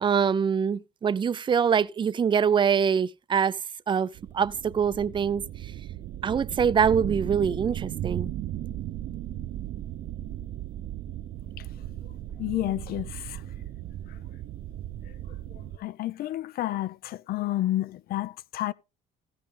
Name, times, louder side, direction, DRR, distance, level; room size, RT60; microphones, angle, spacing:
voice 1, 0.0-3.6 3.9-4.1 4.3-5.4 6.2-8.3, right 7 dB, 30° right, 0.5 m, -24 dB
sound 1, 4.2-15.8, right 12 dB, 65° right, 0.8 m, -36 dB
voice 2, 12.4-13.4 15.8-18.7, left 14 dB, 65° left, 0.6 m, -30 dB
15.0 x 6.3 x 3.8 m
cardioid pair, 110°, 17 cm